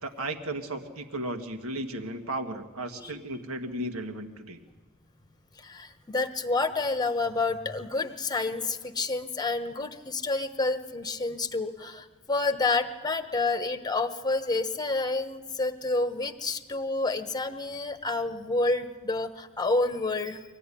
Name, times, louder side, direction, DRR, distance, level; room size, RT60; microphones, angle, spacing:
voice 1, 0.0-4.6, right 1 dB, 70° right, 6 dB, 1.8 m, -35 dB
voice 2, 5.6-20.4, left 3 dB, 20° left, 9 dB, 1.2 m, -29 dB
24.5 x 16.5 x 10.0 m, 1.3 s
head